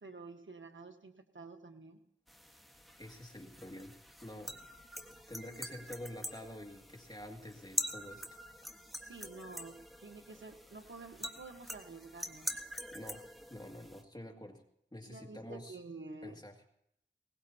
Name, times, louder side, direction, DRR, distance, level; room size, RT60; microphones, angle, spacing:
voice 1, 0.0-2.0 8.9-12.5 15.1-16.4, right 3 dB, 80° right, 5 dB, 1.3 m, -50 dB
sound 1, 2.3-14.0, equal, ahead, 1.4 m, -45 dB
voice 2, 3.0-4.6 5.3-8.4 12.9-14.6 14.9-15.8 16.2-16.5, left 1 dB, 20° left, 1 dB, 2.3 m, -48 dB
21.0 x 19.0 x 2.8 m, 0.76 s
wide cardioid pair, 45°, 20 cm